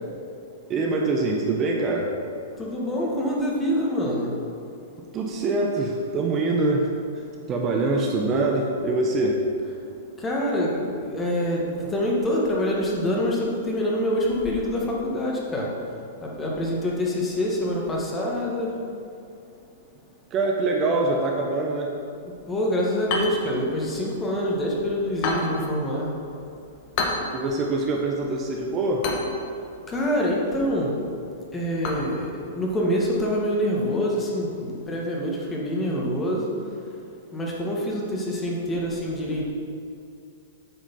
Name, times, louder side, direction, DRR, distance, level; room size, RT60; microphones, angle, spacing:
voice 1, 0.7-2.1 5.1-6.9 7.5-9.4 20.3-21.9 27.3-29.1, right 2 dB, 30° right, 0 dB, 0.9 m, -24 dB
voice 2, 2.6-4.3 10.2-15.7 16.2-18.7 22.5-26.1 29.9-31.0 31.5-36.5 37.3-39.5, equal, 20° left, -3 dB, 1.9 m, -26 dB
sound 1, 23.0-33.1, left 3 dB, 50° left, 1.4 m, -34 dB
8.7 x 5.0 x 5.6 m, 2.5 s
hypercardioid pair, 110°, 0 cm